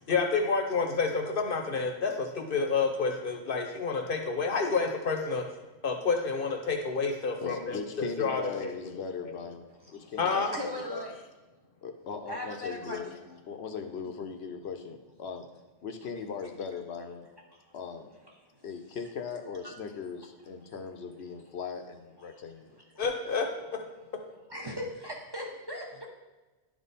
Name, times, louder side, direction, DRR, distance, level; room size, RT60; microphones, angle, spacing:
voice 1, 0.1-5.4 5.8-9.3 10.2-10.5 23.0-23.5, left 4 dB, 60° left, 4 dB, 0.9 m, -29 dB
voice 2, 7.4-11.0 11.8-13.1 13.5-15.4 15.8-17.3 17.7-18.1 18.6-22.7, left 5 dB, 75° left, 6 dB, 0.9 m, -39 dB
voice 3, 10.5-11.2 12.3-13.2 22.7-22.8 24.5-26.1, left 1 dB, 25° right, -2 dB, 1.0 m, -38 dB
10.5 x 3.6 x 4.1 m, 1.2 s
omnidirectional pair, 1.1 m